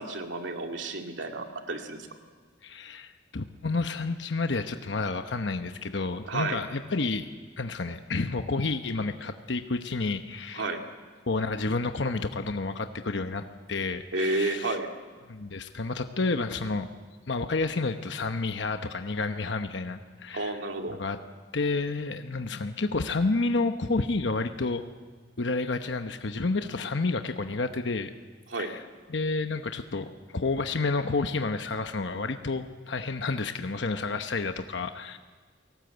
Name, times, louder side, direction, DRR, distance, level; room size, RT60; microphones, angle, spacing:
voice 1, 0.0-2.0 6.2-6.6 10.5-10.9 14.1-14.9 20.3-21.0 28.5-28.7, right 2 dB, 80° right, 3 dB, 2.4 m, -31 dB
voice 2, 2.6-7.3 7.6-10.7 11.3-14.8 15.3-16.9 17.3-20.5 21.0-21.2 21.5-24.8 25.4-28.1 28.6-28.8 29.1-30.0 30.3-35.2, left 3 dB, 70° left, 7 dB, 1.0 m, -30 dB
29.5 x 18.5 x 8.0 m, 1.5 s
head